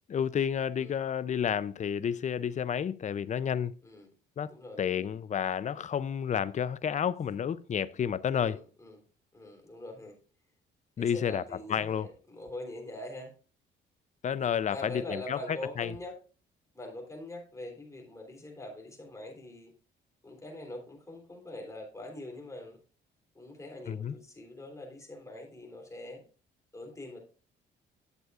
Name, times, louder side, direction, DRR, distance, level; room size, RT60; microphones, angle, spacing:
voice 1, 0.1-3.8 4.4-8.6 11.0-11.4 11.7-12.1 14.2-15.9 23.9-24.1, left 8 dB, 35° left, 0.5 m, -31 dB
voice 2, 4.5-4.8 8.4-9.0 9.3-10.2 11.0-13.3 14.7-16.1 16.7-19.7 20.2-22.8 23.4-26.2 26.7-27.2, left 1 dB, 15° left, 3.4 m, -43 dB
10.5 x 7.8 x 2.4 m
cardioid pair, 90°, 20 cm